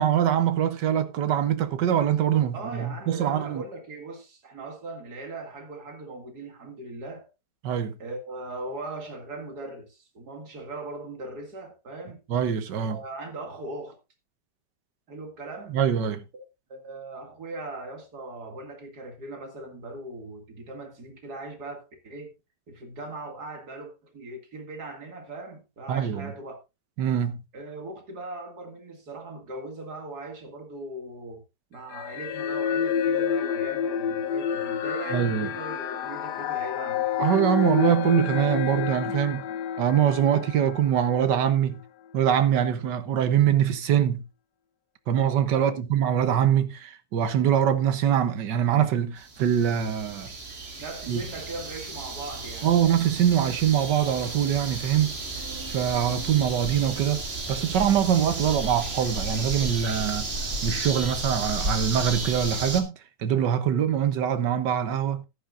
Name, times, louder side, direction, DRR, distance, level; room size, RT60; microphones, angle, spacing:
voice 1, 0.0-3.6 7.6-7.9 12.3-13.0 15.7-16.2 25.9-26.3 27.0-27.4 35.1-35.5 37.2-39.4 39.8-41.8 42.1-44.2 45.1-50.3 51.1-51.2 52.6-55.1 55.7-57.2 57.5-60.3 60.6-65.2, right 9 dB, 80° right, 1.6 m, -23 dB
voice 2, 2.5-7.3 8.0-12.2 12.8-14.0 15.1-15.8 16.3-16.4 16.7-22.3 22.7-26.6 27.5-31.4 31.7-37.1 45.5-45.9 50.8-52.7, right 2 dB, 65° right, 2.7 m, -39 dB
Creepy ambience sound, 31.9-41.4, left 8 dB, 75° left, 1.4 m, -29 dB
sound 1, 49.2-62.8, right 2 dB, 40° right, 1.9 m, -33 dB
14.5 x 10.5 x 2.5 m
omnidirectional pair, 1.8 m